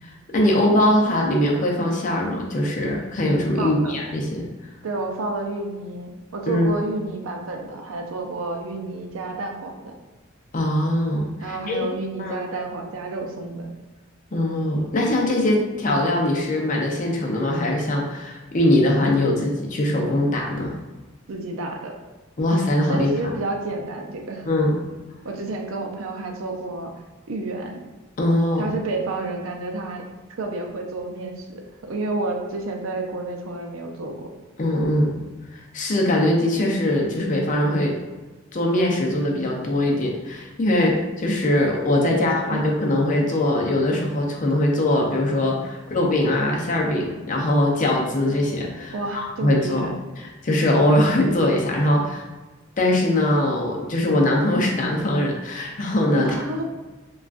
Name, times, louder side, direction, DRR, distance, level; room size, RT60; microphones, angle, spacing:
voice 1, 0.0-4.4 6.5-6.7 10.5-11.9 12.2-12.4 14.3-20.7 22.4-23.3 24.5-24.8 28.2-28.7 34.6-35.2 35.5-38.0 38.5-52.2 52.8-56.3, left 1 dB, 40° left, -1 dB, 0.5 m, -22 dB
voice 2, 3.6-4.0 4.8-9.9 11.4-13.7 21.3-21.9 22.9-24.5 25.2-26.9 27.3-27.8 28.6-30.0 30.3-34.3 42.1-42.7 48.9-50.0 56.1-56.6, right 2 dB, 90° right, 2 dB, 0.5 m, -30 dB
3.5 x 2.3 x 2.4 m, 1.2 s
head